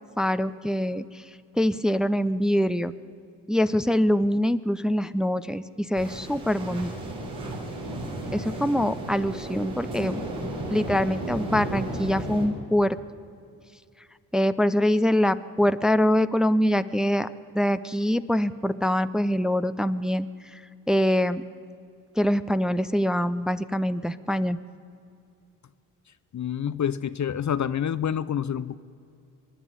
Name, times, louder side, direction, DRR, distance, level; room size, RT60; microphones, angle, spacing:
voice 1, 0.2-1.0 1.6-2.9 3.5-6.9 8.3-10.3 10.7-13.0 14.3-17.3 17.5-20.3 20.9-21.4 22.2-24.6, equal, ahead, 12 dB, 0.7 m, -24 dB
sound 1, 6.0-12.5, right 1 dB, 75° right, 4.1 m, -34 dB
voice 2, 26.3-28.7, left 9 dB, 40° left, 14 dB, 0.7 m, -27 dB
24.0 x 11.0 x 9.8 m, 2.5 s
hypercardioid pair, 40°, 48 cm